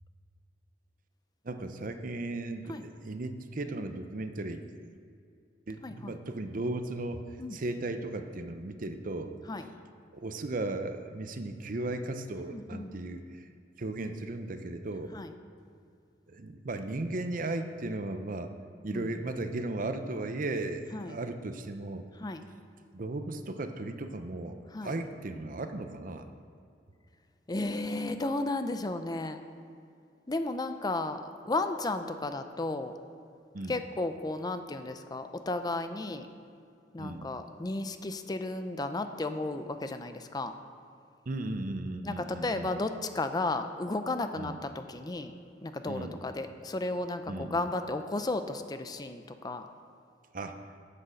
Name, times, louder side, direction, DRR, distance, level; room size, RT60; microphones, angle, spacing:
voice 1, 1.4-4.6 5.7-9.3 10.1-13.2 13.8-15.1 16.3-18.5 18.8-22.0 22.9-26.3 33.5-33.8 37.0-37.3 41.3-42.7 44.4-44.6 45.9-46.2 47.3-47.5 50.3-50.6, right 2 dB, 50° right, 8 dB, 0.7 m, -36 dB
voice 2, 5.8-6.1 7.4-7.6 9.5-9.7 12.4-12.9 15.1-15.3 18.9-19.1 20.9-21.2 22.2-22.4 24.7-24.9 27.5-29.4 30.3-31.2 31.4-32.9 33.7-36.3 36.9-40.5 42.0-45.3 45.6-49.7, left 2 dB, 25° left, 8 dB, 0.5 m, -34 dB
9.7 x 7.9 x 6.5 m, 2.4 s
head